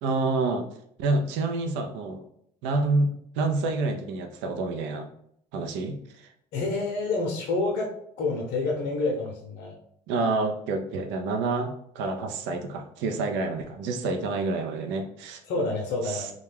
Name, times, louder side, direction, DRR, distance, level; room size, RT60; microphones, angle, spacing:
voice 1, 0.0-0.6 1.0-2.2 2.6-5.1 5.5-6.3 10.1-15.4 16.0-16.3, right 3 dB, 65° right, 5 dB, 0.4 m, -28 dB
voice 2, 6.5-9.7 15.5-16.3, left 3 dB, 65° left, -1 dB, 0.7 m, -28 dB
2.3 x 2.2 x 3.3 m, 0.70 s
hypercardioid pair, 65°, 20 cm